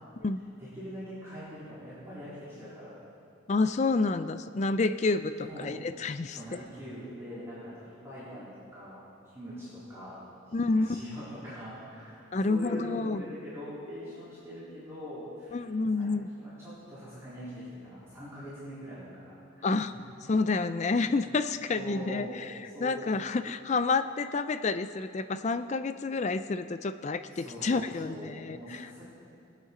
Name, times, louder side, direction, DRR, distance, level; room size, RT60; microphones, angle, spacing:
voice 1, 0.6-2.9 5.4-5.7 6.3-9.0 9.3-12.2 12.5-15.6 15.9-16.1 16.4-19.7 20.9-21.2 21.7-22.4 22.7-23.1 27.3-29.1, equal, 15° right, -13 dB, 3.6 m, -43 dB
voice 2, 3.5-6.6 10.5-11.0 12.3-13.2 15.5-16.3 19.6-19.9 20.3-22.5 22.8-28.8, left 3 dB, 35° left, 11 dB, 0.4 m, -29 dB
21.5 x 8.2 x 3.8 m, 2.5 s
head